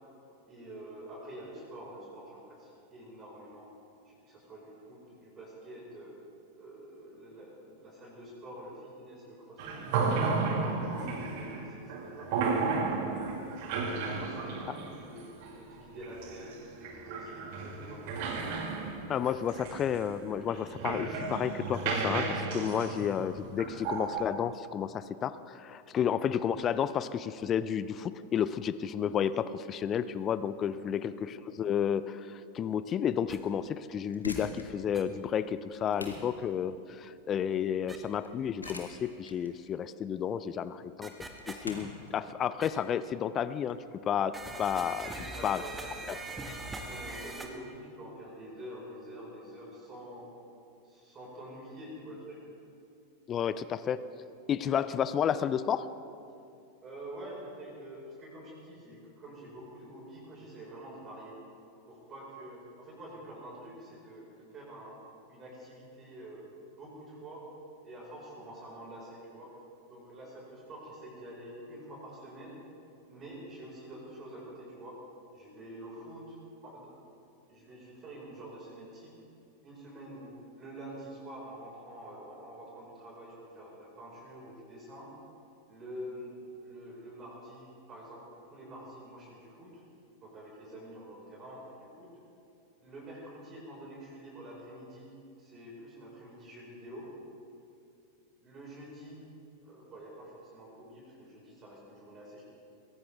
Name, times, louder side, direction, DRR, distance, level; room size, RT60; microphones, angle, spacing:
voice 1, 0.5-3.7 4.0-6.2 6.6-9.9 10.4-13.6 14.0-15.3 15.6-18.3 30.9-31.3 45.2-45.8 46.0-46.3 46.9-50.3 50.8-52.4 54.6-54.8 56.8-61.4 61.9-65.0 65.3-67.4 67.8-72.6 73.1-75.0 75.3-76.4 76.6-76.9 77.5-79.1 79.6-85.1 85.7-89.8 90.2-92.1 92.8-95.1 95.4-97.1 98.4-99.2 99.6-102.4, right 1 dB, 25° right, -4 dB, 5.0 m, -47 dB
sound 1, 9.6-24.2, right 4 dB, 50° right, 2.0 m, -33 dB
voice 2, 19.1-41.1 41.5-45.1 45.4-45.6 46.1-46.2 53.3-54.0 54.5-55.9, left 8 dB, 30° left, 15 dB, 0.5 m, -31 dB
sound 2, 33.3-33.4 34.9-35.0 37.9-38.0 38.6-38.7 41.0-41.5 42.6-42.7 44.3-47.5, right 2 dB, 10° right, 1.6 m, -41 dB
sound 3, 34.1-44.7, left 2 dB, 80° left, 1.7 m, -47 dB
23.0 x 16.5 x 3.5 m, 2.6 s
figure-of-eight pair, 90°, 0 cm